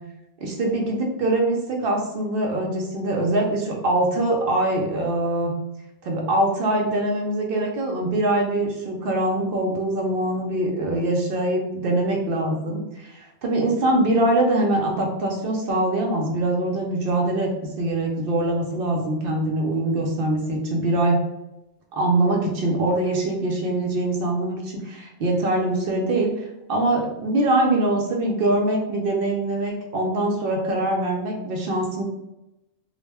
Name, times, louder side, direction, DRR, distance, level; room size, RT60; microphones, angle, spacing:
voice 1, 0.4-5.5 6.0-17.5 17.8-21.2 21.9-32.0, right 1 dB, 60° right, 0 dB, 0.6 m, -23 dB
2.3 x 2.1 x 3.3 m, 0.92 s
omnidirectional pair, 1.3 m